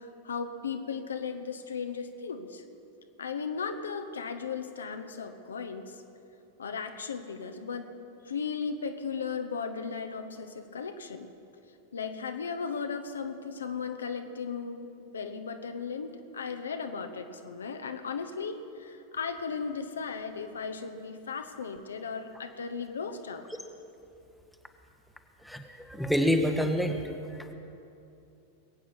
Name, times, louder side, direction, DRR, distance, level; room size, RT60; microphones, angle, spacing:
voice 1, 0.0-2.6 3.2-5.9 6.6-7.9 8.2-11.3 11.9-23.4, left 5 dB, 70° left, 7 dB, 0.9 m, -36 dB
voice 2, 25.9-27.0, equal, ahead, 5 dB, 1.0 m, -26 dB
21.5 x 8.6 x 6.0 m, 2.8 s
figure-of-eight pair, 90°, 0 cm